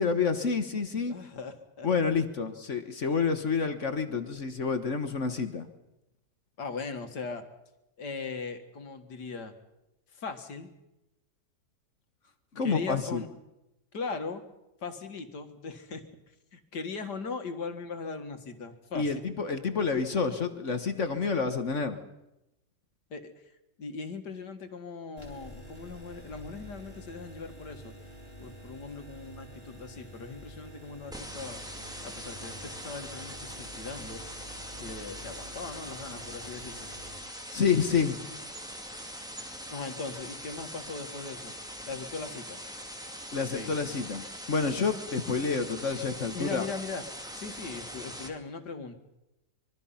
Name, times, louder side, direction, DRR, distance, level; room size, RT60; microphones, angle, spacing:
voice 1, 0.0-1.1 1.8-5.7 12.5-13.2 18.9-22.0 37.5-38.2 43.3-46.7, left 5 dB, 50° left, 9 dB, 1.5 m, -28 dB
voice 2, 1.1-1.9 6.6-7.4 8.0-9.5 10.1-10.7 12.6-13.3 13.9-14.4 14.8-16.0 16.5-19.2 23.1-23.3 23.8-27.9 28.4-31.6 32.0-34.2 34.8-36.9 39.7-41.5 41.9-42.6 43.5-43.8 46.3-47.0 47.3-49.0, left 4 dB, 80° left, 7 dB, 2.4 m, -39 dB
sound 1, 25.2-37.2, equal, 15° left, 4.1 m, -48 dB
sound 2, 31.1-48.3, equal, ahead, 2.3 m, -42 dB
25.5 x 23.0 x 5.7 m, 0.93 s
omnidirectional pair, 1.8 m